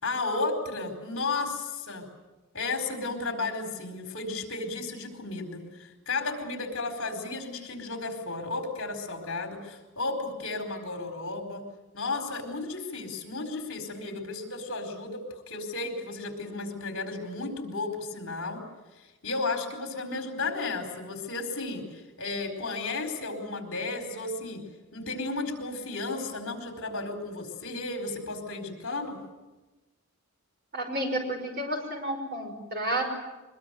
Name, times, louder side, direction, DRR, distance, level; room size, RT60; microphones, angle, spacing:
voice 1, 0.0-2.1 2.5-11.6 11.9-18.6 18.9-24.6 24.9-29.2, left 3 dB, 60° left, 5 dB, 4.5 m, -33 dB
voice 2, 30.7-33.1, right 1 dB, 45° right, 3 dB, 5.6 m, -31 dB
23.5 x 22.5 x 9.3 m, 1.1 s
head